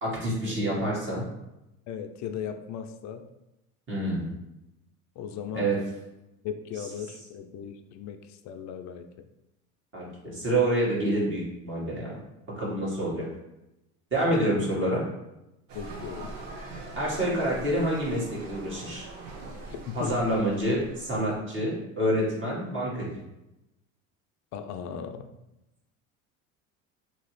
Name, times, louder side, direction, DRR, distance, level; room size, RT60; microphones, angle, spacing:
voice 1, 0.0-1.3 3.9-4.3 5.5-5.8 9.9-12.2 12.6-13.3 14.1-15.0 16.9-19.1 19.9-23.2, right 1 dB, 30° right, -5 dB, 1.4 m, -27 dB
voice 2, 1.9-3.3 5.2-5.7 6.4-9.3 12.9-13.0 14.3-14.6 15.7-16.3 19.7-20.1 24.5-25.3, left 8 dB, 45° left, 7 dB, 0.4 m, -37 dB
sound 1, 15.7-21.3, right 2 dB, 60° right, 0.9 m, -42 dB
2.9 x 2.8 x 3.1 m, 0.92 s
hypercardioid pair, 75°, 40 cm